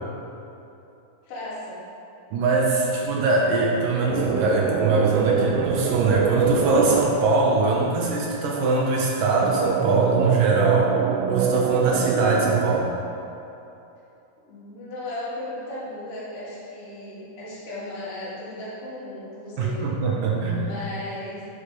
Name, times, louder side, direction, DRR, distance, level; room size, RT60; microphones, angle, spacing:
voice 1, 1.2-1.8 14.5-19.9 20.5-21.4, left 1 dB, 90° left, -9 dB, 5.1 m, -36 dB
voice 2, 2.3-10.9 11.3-12.9 19.6-20.7, right 3 dB, 65° right, -3 dB, 2.5 m, -22 dB
sound 1, 4.1-7.1 9.4-12.8, right 7 dB, 85° right, 2.6 m, -23 dB
11.5 x 7.5 x 5.2 m, 2.8 s
omnidirectional pair, 4.6 m